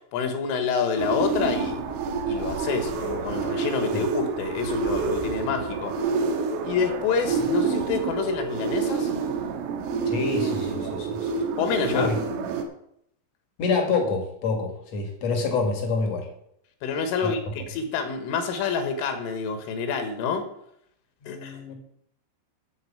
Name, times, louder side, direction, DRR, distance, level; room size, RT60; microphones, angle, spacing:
voice 1, 0.1-1.8 2.2-5.9 6.6-9.1 11.6-12.1 16.8-20.4 21.3-21.6, left 5 dB, 75° left, 7 dB, 3.9 m, -27 dB
sound 1, 1.0-12.6, right 5 dB, 85° right, 3.9 m, -28 dB
voice 2, 10.1-11.3 11.9-12.2 13.6-16.3 17.2-17.5 21.2-21.8, left 4 dB, 55° left, 3 dB, 2.0 m, -27 dB
14.0 x 4.7 x 8.6 m, 0.72 s
omnidirectional pair, 5.8 m